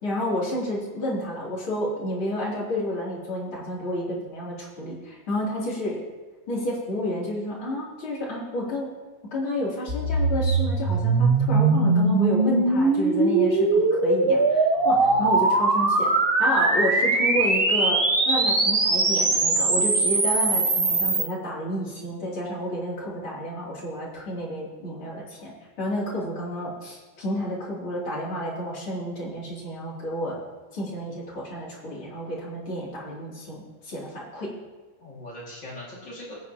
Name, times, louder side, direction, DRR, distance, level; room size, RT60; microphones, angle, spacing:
voice 1, 0.0-6.0 6.5-8.9 9.2-16.1 16.4-18.0 18.3-30.4 30.7-34.5, left 1 dB, 75° left, -5 dB, 3.9 m, -30 dB
sound 1, 9.9-21.2, right 3 dB, 35° right, 1.1 m, -21 dB
voice 2, 14.7-15.4 35.0-36.4, left 1 dB, 60° left, -4 dB, 3.0 m, -39 dB
22.0 x 9.2 x 2.9 m, 1.2 s
omnidirectional pair, 2.3 m